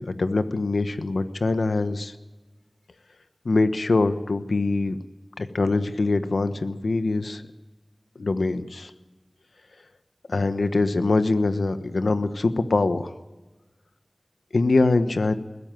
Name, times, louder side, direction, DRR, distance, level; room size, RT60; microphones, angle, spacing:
voice 1, 0.0-2.1 3.4-5.0 5.4-7.4 8.2-8.9 10.3-13.1 14.5-15.3, left 3 dB, 90° left, 10 dB, 1.2 m, -23 dB
21.0 x 15.5 x 9.1 m, 1.2 s
wide cardioid pair, 60°, 0 cm